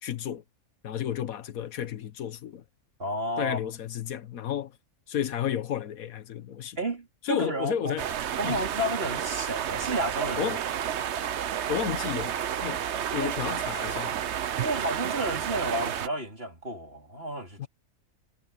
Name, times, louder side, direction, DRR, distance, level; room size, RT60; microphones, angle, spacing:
voice 1, 0.0-0.4 0.8-2.6 3.4-4.8 5.1-6.8 7.2-8.1 8.4-8.6 10.4-10.6 11.7-12.8 13.1-14.1 17.6-17.7, left 10 dB, 65° left, 1.4 m, -32 dB
voice 2, 3.0-3.6 6.8-7.9 8.4-10.6 13.1-13.3 14.6-17.6, right 1 dB, 40° right, 4.3 m, -31 dB
sound 1, 8.0-16.1, right 9 dB, 55° right, 0.9 m, -31 dB
omnidirectional pair, 1.6 m